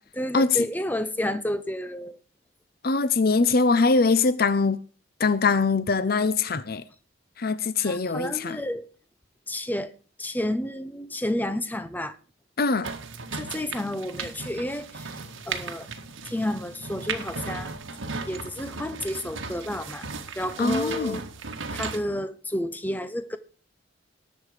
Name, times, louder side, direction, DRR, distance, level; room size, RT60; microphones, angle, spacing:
voice 1, 0.0-2.2 7.8-8.9 9.5-9.9 10.2-12.2 13.3-15.2 15.5-15.9 16.2-17.7 18.3-20.1 20.4-21.2 21.7-23.4, left 1 dB, 10° left, 0.9 m, -30 dB
voice 2, 2.8-4.8 5.2-6.8 7.4-8.6 12.6-12.9 20.6-21.2, left 4 dB, 50° left, 0.6 m, -22 dB
sound 1, 12.8-22.0, right 4 dB, 80° right, 1.7 m, -36 dB
18.5 x 7.8 x 5.0 m
head